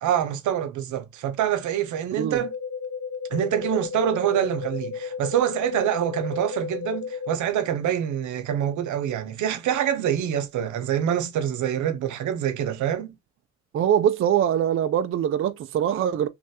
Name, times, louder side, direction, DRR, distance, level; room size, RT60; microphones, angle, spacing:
voice 1, 0.0-2.5 3.3-13.1, right 10 dB, 75° right, 0.7 m, -26 dB
sound 1, 2.3-7.4, left 6 dB, 55° left, 0.6 m, -33 dB
voice 2, 13.7-16.3, right 9 dB, 45° right, 0.4 m, -23 dB
3.2 x 2.5 x 2.7 m
cardioid pair, 90°, 30 cm